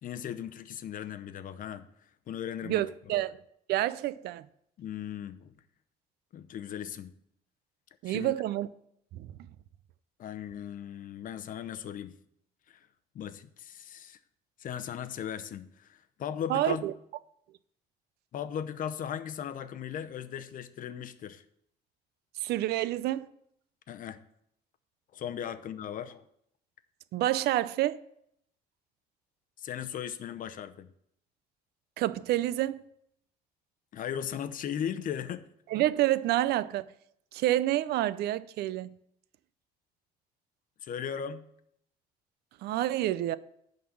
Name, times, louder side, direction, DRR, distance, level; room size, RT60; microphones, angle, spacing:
voice 1, 0.0-1.9 2.3-2.9 4.8-5.5 6.3-7.1 8.0-8.3 10.2-12.1 12.7-12.9 13.1-14.2 14.6-16.8 18.3-21.4 23.9-24.2 25.1-26.2 29.6-30.9 33.9-35.5 40.8-41.4, left 9 dB, 55° left, 0.7 m, -37 dB
voice 2, 2.6-3.4 3.7-4.5 8.0-8.7 9.1-9.3 16.5-16.9 22.4-23.3 27.1-28.0 32.0-32.8 35.7-36.9 37.3-38.9 42.6-43.4, right 14 dB, 75° right, 0.5 m, -28 dB
11.0 x 4.0 x 7.1 m
cardioid pair, 110°, 17 cm